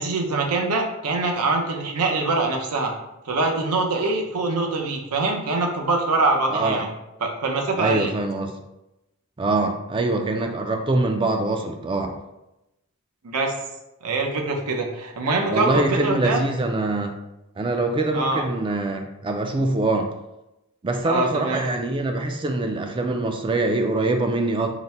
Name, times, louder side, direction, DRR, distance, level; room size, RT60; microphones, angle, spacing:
voice 1, 0.0-2.9 3.3-6.9 7.2-8.1 13.2-13.5 14.0-16.4 18.1-18.4 21.0-21.7, right 3 dB, 85° right, 2 dB, 0.7 m, -24 dB
voice 2, 6.5-6.8 7.8-8.5 9.4-12.1 15.5-17.1 17.6-20.1 20.8-24.7, right 2 dB, 20° right, 5 dB, 0.3 m, -24 dB
4.0 x 2.1 x 4.2 m, 0.93 s
head